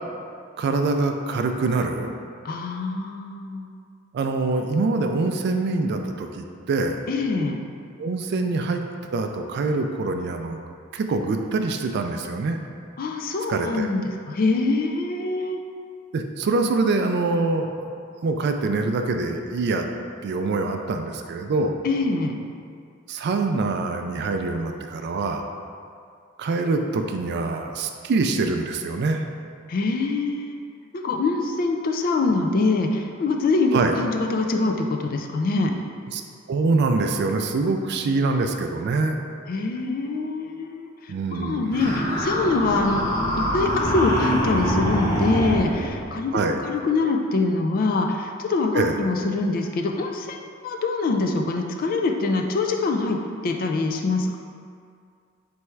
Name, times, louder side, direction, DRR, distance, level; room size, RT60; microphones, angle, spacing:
voice 1, 0.6-2.1 4.1-7.0 8.0-8.8 9.1-12.6 13.5-13.9 16.1-17.9 18.2-19.9 20.2-21.8 23.1-25.5 26.4-29.2 33.7-33.9 36.1-36.2 36.5-39.2 41.1-41.8 46.3-46.6 48.7-49.0, right 3 dB, 50° right, 5 dB, 0.3 m, -24 dB
voice 2, 2.4-3.7 7.1-7.6 13.0-15.6 21.8-22.4 29.7-30.6 30.9-35.7 39.5-43.0 43.4-50.4 50.6-54.4, left 3 dB, 45° left, 3 dB, 0.3 m, -24 dB
sound 1, 41.7-46.1, equal, 15° left, 1.2 m, -25 dB
3.4 x 3.1 x 4.5 m, 2.3 s
head